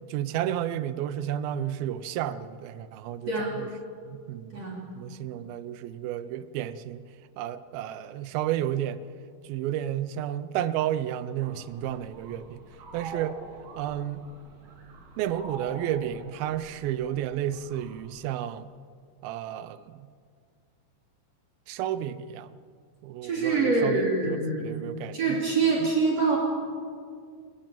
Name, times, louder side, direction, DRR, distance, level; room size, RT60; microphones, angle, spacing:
voice 1, 0.1-3.7 4.1-4.7 5.0-7.0 7.4-9.0 9.4-12.6 12.9-13.4 13.8-14.2 15.2-18.7 19.2-20.1 21.7-22.5 23.0-25.4, right 11 dB, 85° right, 14 dB, 2.5 m, -32 dB
voice 2, 3.3-3.6 4.5-4.8 23.2-24.7 25.1-26.4, right 4 dB, 45° right, -2 dB, 4.0 m, -25 dB
sound 1, 11.4-18.1, right 3 dB, 70° right, 4.6 m, -45 dB
29.0 x 12.0 x 9.0 m, 2.2 s
omnidirectional pair, 4.2 m